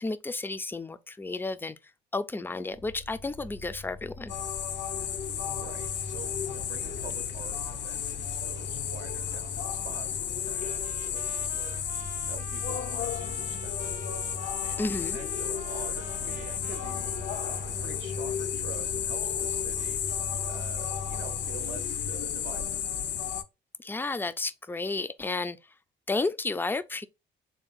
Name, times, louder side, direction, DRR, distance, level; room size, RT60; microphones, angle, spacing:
voice 1, 0.0-1.8 2.1-4.3 14.8-15.2 23.8-25.6 26.1-27.1, left 3 dB, 10° left, 0.3 m, -32 dB
sound 1, 2.7-22.2, left 2 dB, 80° left, 1.2 m, -43 dB
sound 2, 4.3-23.4, left 9 dB, 65° left, 0.5 m, -33 dB
voice 2, 5.3-14.0 14.3-22.8, right 7 dB, 75° right, 0.6 m, -47 dB
Trumpet, 10.5-18.0, right 5 dB, 45° right, 0.7 m, -48 dB
3.5 x 2.6 x 3.8 m
cardioid pair, 90°, 20 cm